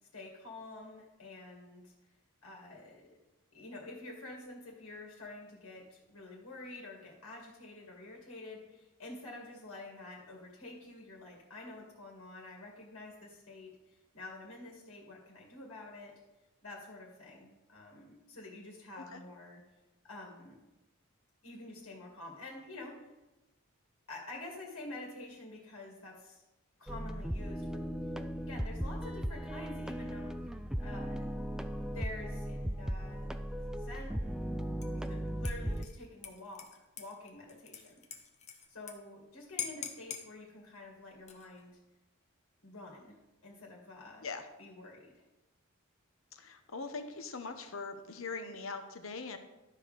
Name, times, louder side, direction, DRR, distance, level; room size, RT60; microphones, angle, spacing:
voice 1, 0.1-1.9 2.4-3.2 3.5-16.2 16.6-19.6 20.0-20.6 21.4-23.1 24.1-26.4 26.8-27.9 28.4-30.4 30.8-31.3 31.8-34.6 35.0-38.0 38.7-41.8 42.6-43.2 43.4-44.3 44.6-45.2, left 2 dB, 90° left, -1 dB, 2.3 m, -48 dB
sound 1, 26.9-35.9, equal, 5° right, 0.3 m, -37 dB
Dishes pots and pans / Liquid, 34.8-35.1 35.4-38.9 39.2-39.3 39.6-40.3 41.1-41.6, left 7 dB, 35° left, 1.0 m, -44 dB
voice 2, 46.3-49.4, left 4 dB, 70° left, 7 dB, 1.0 m, -41 dB
12.5 x 4.9 x 5.2 m, 1.0 s
head